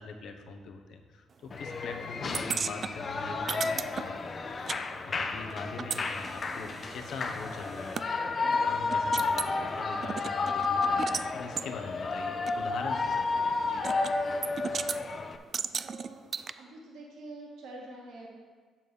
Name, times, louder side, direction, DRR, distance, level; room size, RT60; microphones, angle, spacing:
voice 1, 0.0-4.3 5.0-8.4 8.6-13.8, left 4 dB, 75° left, 4 dB, 1.0 m, -42 dB
Shout / Cheering, 1.5-15.4, left 3 dB, 40° left, 0.6 m, -31 dB
sound 1, 2.3-4.8 5.1-8.1 8.5-8.6 8.9-9.5 10.0-11.3 11.6-11.7 12.5-12.6 13.8-14.1 14.4-15.0 15.5-16.5, right 6 dB, 45° right, 0.3 m, -36 dB
voice 2, 14.6-14.9 15.8-16.2 16.5-18.3, right 2 dB, 85° right, -2 dB, 1.9 m, -46 dB
7.4 x 6.4 x 5.4 m, 1.5 s
cardioid pair, 90°, 0 cm